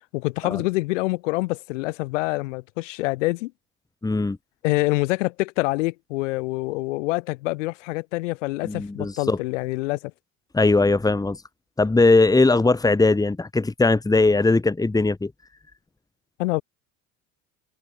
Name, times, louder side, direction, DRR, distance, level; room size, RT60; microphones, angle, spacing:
voice 1, 0.1-3.5 4.6-10.1 16.4-16.6, left 21 dB, 85° left, 5.4 m, -26 dB
voice 2, 4.0-4.4 8.6-9.4 10.5-11.4 11.8-15.3, left 3 dB, 10° left, 2.0 m, -19 dB
open air
supercardioid pair, 95°, 36 cm